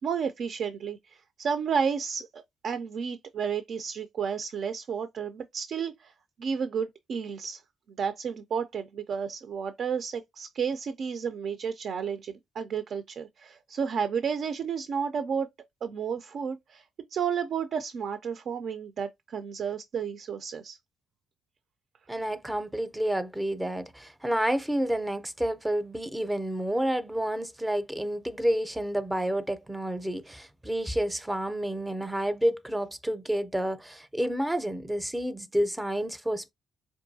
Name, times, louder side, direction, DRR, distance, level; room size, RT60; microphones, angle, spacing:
voice 1, 0.0-6.1 6.4-7.6 7.9-15.5 15.8-16.8 17.1-20.8, right 6 dB, 60° right, 0.4 m, -32 dB
voice 2, 22.1-36.5, right 1 dB, 10° right, 0.5 m, -29 dB
4.5 x 2.6 x 2.7 m
cardioid pair, 90°, 0 cm